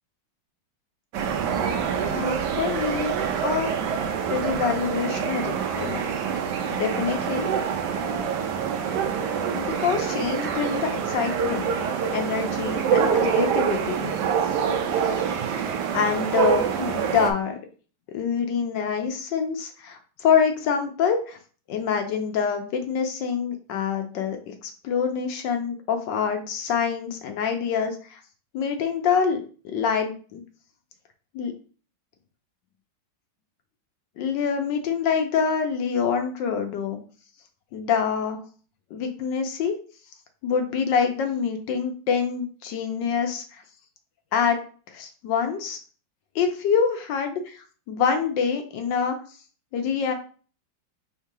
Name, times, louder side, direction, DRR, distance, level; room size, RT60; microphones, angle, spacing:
sound 1, 1.1-17.3, right 7 dB, 70° right, 1.1 m, -26 dB
voice 1, 2.0-3.7 4.3-6.0 6.7-7.5 9.5-11.7 12.1-14.1 15.9-17.6 18.1-21.4 21.7-28.2 28.5-30.4 31.3-31.5 34.2-37.0 37.7-38.4 38.9-39.7 40.4-43.6 44.3-44.6 44.9-45.8 46.3-49.2 49.7-50.1, left 6 dB, 70° left, 5 dB, 1.2 m, -26 dB
3.6 x 2.8 x 4.6 m, 0.40 s
omnidirectional pair, 2.1 m